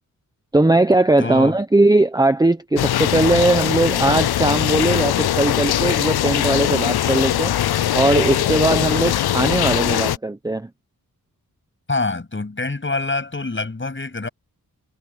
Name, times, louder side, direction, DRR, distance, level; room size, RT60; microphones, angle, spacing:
voice 1, 0.5-7.5 7.9-10.7, right 2 dB, 10° right, 0.9 m, -19 dB
voice 2, 1.2-1.6 11.9-14.3, left 3 dB, 30° left, 7.8 m, -25 dB
sound 1, 2.8-10.2, left 12 dB, 85° left, 0.6 m, -20 dB
wide cardioid pair, 110°, 37 cm